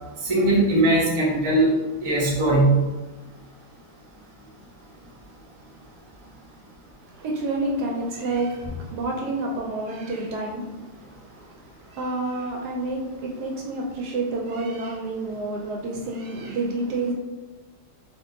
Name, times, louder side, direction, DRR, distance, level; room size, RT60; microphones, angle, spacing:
voice 1, 0.3-1.7 2.0-2.8, right 2 dB, 50° right, -5 dB, 0.3 m, -19 dB
voice 2, 7.0-17.1, right 2 dB, 70° right, 0 dB, 1.0 m, -29 dB
2.7 x 2.5 x 3.6 m, 1.1 s
omnidirectional pair, 1.9 m